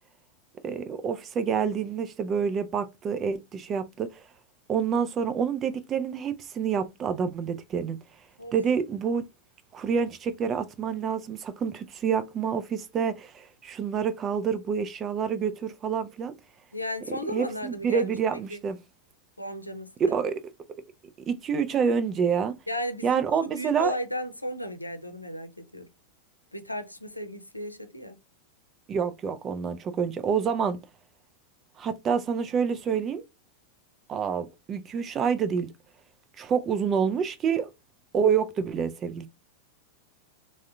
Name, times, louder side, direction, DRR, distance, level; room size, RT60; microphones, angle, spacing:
voice 1, 0.6-4.1 4.7-8.0 8.5-9.2 9.7-16.3 17.1-18.8 20.0-20.3 21.3-22.5 23.0-24.0 28.9-30.8 31.8-33.2 34.1-35.7 36.4-37.7 38.1-39.3, right 6 dB, 25° right, 0.4 m, -27 dB
voice 2, 16.7-18.1 18.5-18.6 19.4-19.9 22.7-25.9 26.5-28.2, equal, 85° left, 0.6 m, -35 dB
3.6 x 2.1 x 3.4 m
figure-of-eight pair, 90°, 0 cm